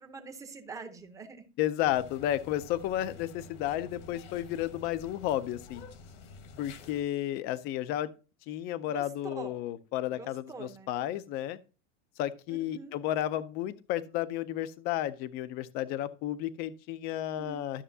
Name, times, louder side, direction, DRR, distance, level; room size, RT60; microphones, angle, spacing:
voice 1, 0.0-1.5 8.9-9.5 10.1-10.9 12.5-12.9 17.4-17.6, right 4 dB, 10° right, 0.7 m, -44 dB
voice 2, 1.6-5.9 6.6-8.1 8.5-11.6 12.2-17.8, left 12 dB, 30° left, 0.4 m, -32 dB
sound 1, 1.8-7.0, left 4 dB, 75° left, 1.5 m, -49 dB
12.5 x 6.7 x 2.7 m
supercardioid pair, 175°, 36 cm